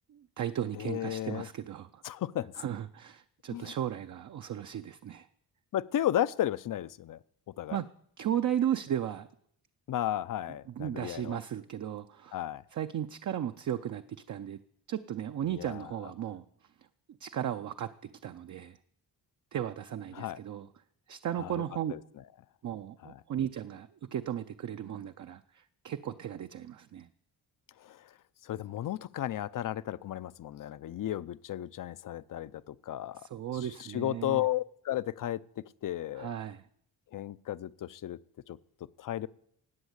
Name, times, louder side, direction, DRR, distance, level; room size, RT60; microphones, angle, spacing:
voice 1, 0.1-2.0 2.6-5.3 7.7-7.9 8.2-9.3 10.7-12.4 12.7-14.6 14.9-16.5 17.2-18.8 19.5-20.7 21.1-21.9 22.6-27.1 33.2-34.4 36.2-36.7, right 10 dB, 50° right, 8 dB, 0.6 m, -35 dB
voice 2, 0.8-1.5 2.0-2.5 3.5-3.7 5.7-7.2 7.6-7.8 9.9-11.4 12.3-12.6 15.5-15.9 20.1-20.4 21.4-21.6 21.9-22.0 23.0-23.2 27.8-28.1 28.4-33.2 33.6-36.3 37.1-38.2 38.5-38.6 39.0-39.3, left 12 dB, 55° left, 17 dB, 0.5 m, -34 dB
18.5 x 8.2 x 8.0 m, 0.68 s
wide cardioid pair, 160°, 39 cm